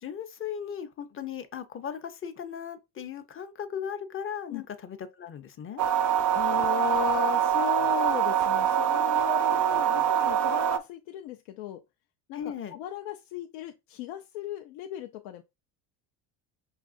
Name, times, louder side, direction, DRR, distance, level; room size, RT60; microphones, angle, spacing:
voice 1, 0.0-5.8 9.5-10.0 12.3-12.8, left 8 dB, 25° left, 0.5 m, -37 dB
sound 1, 5.8-10.8, right 9 dB, 40° right, 0.5 m, -24 dB
voice 2, 6.3-11.8 12.3-15.4, left 11 dB, 75° left, 0.6 m, -36 dB
5.3 x 2.4 x 2.4 m
supercardioid pair, 90°, 49 cm